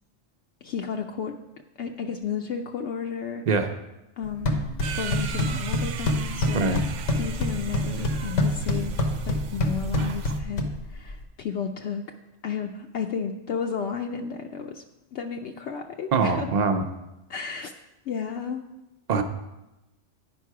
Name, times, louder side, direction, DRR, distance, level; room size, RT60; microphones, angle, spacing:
voice 1, 0.6-1.4 1.8-3.4 4.2-4.6 4.9-6.7 7.2-8.9 9.2-12.0 12.4-14.8 15.1-16.5 17.3-17.7 18.1-18.7, left 6 dB, 70° left, 3 dB, 0.8 m, -32 dB
sound 1, 4.2-11.2, left 1 dB, 90° left, 1.3 m, -27 dB
sound 2, 4.8-10.4, right 8 dB, 85° right, 0.9 m, -36 dB
voice 2, 16.1-16.8 19.1-19.2, right 4 dB, 45° right, 7 dB, 0.6 m, -22 dB
9.5 x 5.5 x 4.6 m, 0.97 s
omnidirectional pair, 1.2 m